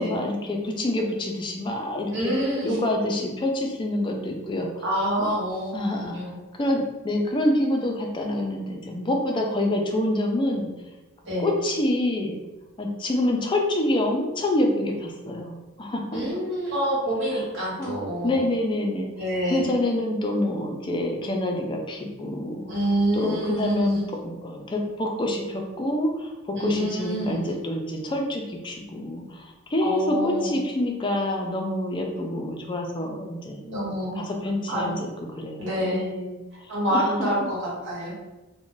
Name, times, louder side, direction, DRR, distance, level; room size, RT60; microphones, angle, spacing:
voice 1, 0.0-2.3 2.6-4.8 5.2-5.3 5.7-6.2 6.6-10.7 11.4-12.4 12.8-16.4 17.3-17.4 17.8-19.1 19.5-22.7 23.1-33.6 34.1-35.1 35.4-36.4 36.9-37.3, left 1 dB, 25° left, 1 dB, 0.4 m, -27 dB
voice 2, 2.1-2.8 4.8-5.7 6.0-6.4 11.2-11.5 16.1-18.4 19.2-19.7 22.7-24.1 26.5-27.4 29.8-30.6 33.6-34.2 34.7-35.0 35.6-36.0 36.7-38.1, equal, 55° right, -6 dB, 1.3 m, -27 dB
2.4 x 2.1 x 3.8 m, 1.1 s
head